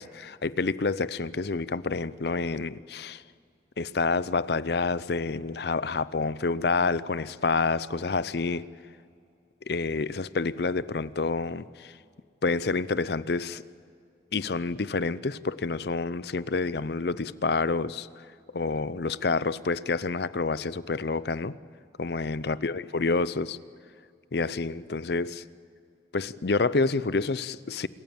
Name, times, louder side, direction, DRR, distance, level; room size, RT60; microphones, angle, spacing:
voice 1, 0.0-3.2 3.8-8.7 9.7-11.9 12.4-13.6 14.3-18.3 18.5-21.5 22.0-23.6 24.3-25.4 26.1-27.9, left 4 dB, 60° left, 17 dB, 0.6 m, -28 dB
26.5 x 14.5 x 8.8 m, 2.4 s
head